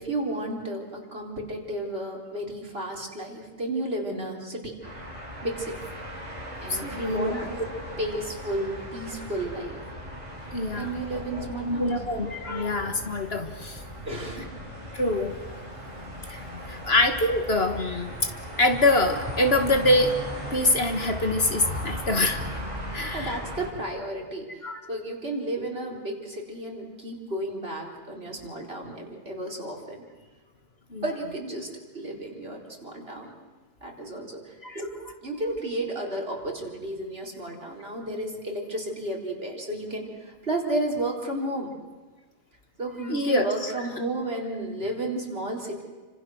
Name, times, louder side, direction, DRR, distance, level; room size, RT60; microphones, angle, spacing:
voice 1, 0.0-4.7 5.4-5.8 6.6-7.6 8.0-9.8 10.8-11.9 14.0-14.6 22.8-30.0 31.0-33.3 33.8-34.9 35.2-41.7 42.8-45.8, right 1 dB, 50° right, 0 dB, 4.4 m, -33 dB
sound 1, 4.8-23.7, equal, 25° right, 5.8 m, -37 dB
voice 2, 6.8-7.5 10.5-10.9 11.6-13.8 14.9-15.3 16.3-18.1 18.6-20.1 20.5-22.4 22.9-23.4 24.6-24.8 30.9-31.0 34.6-34.8 43.1-43.7, left 2 dB, 55° left, 5 dB, 2.1 m, -25 dB
29.5 x 26.0 x 6.4 m, 1.4 s
omnidirectional pair, 1.3 m